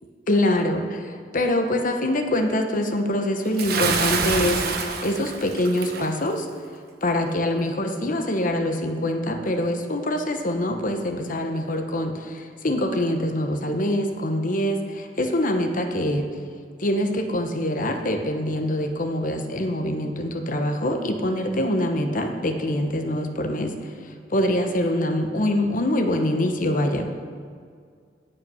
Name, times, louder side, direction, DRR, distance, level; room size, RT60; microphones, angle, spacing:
voice 1, 0.3-6.5 7.0-16.3 16.8-27.1, left 1 dB, 50° left, 5 dB, 1.0 m, -24 dB
Bathtub (filling or washing) / Splash splatter, 3.6-6.1, right 4 dB, 60° right, 1.0 m, -26 dB
16.5 x 5.5 x 5.6 m, 2.1 s
head